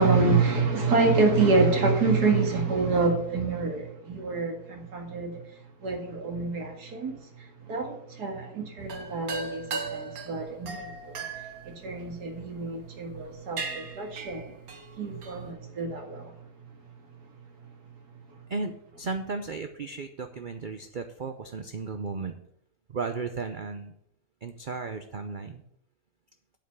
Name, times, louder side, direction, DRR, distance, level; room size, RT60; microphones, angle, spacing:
voice 1, 0.0-5.4 5.8-7.2 7.7-11.2 11.6-14.4 15.0-16.3, right 3 dB, 85° right, 2.4 m, -26 dB
sound 1, 8.8-12.6 13.1-13.3 13.6-15.5, right 4 dB, 65° right, 1.7 m, -37 dB
voice 2, 18.5-22.3 22.9-23.9 24.4-25.6, right 4 dB, 50° right, 0.6 m, -35 dB
8.9 x 5.6 x 8.0 m
omnidirectional pair, 1.6 m